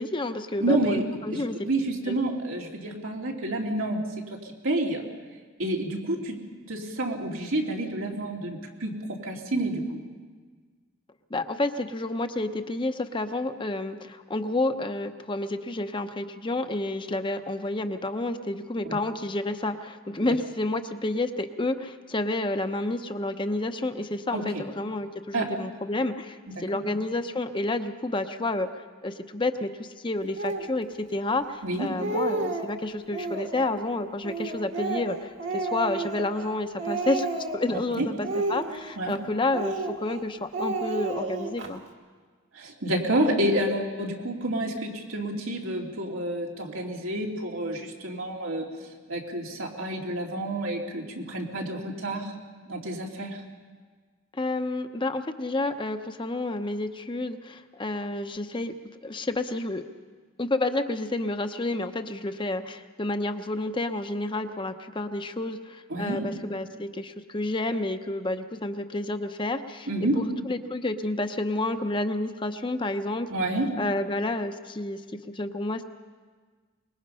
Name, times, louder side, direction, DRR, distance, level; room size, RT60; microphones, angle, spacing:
voice 1, 0.0-1.6 2.1-2.2 11.3-37.3 37.5-41.8 54.3-58.7 59.0-59.8 60.4-69.9 70.2-73.3 73.8-75.8, left 2 dB, 25° left, 8 dB, 0.8 m, -30 dB
voice 2, 0.6-4.1 4.6-5.0 5.6-6.4 6.6-10.0 24.3-24.4 25.3-25.5 26.5-26.8 31.6-31.9 38.0-38.1 39.0-39.2 42.5-48.7 49.1-52.3 52.7-53.4 65.9-66.3 69.9-70.3 73.3-73.8, right 1 dB, 90° right, -1 dB, 2.9 m, -29 dB
Speech, 30.4-30.7 31.4-31.5 31.8-32.7 33.1-33.7 34.2-36.5 36.8-37.7 38.2-39.2 39.5-40.2 40.5-41.7, right 3 dB, 65° right, 2.1 m, -31 dB
24.5 x 21.0 x 5.6 m, 1.5 s
head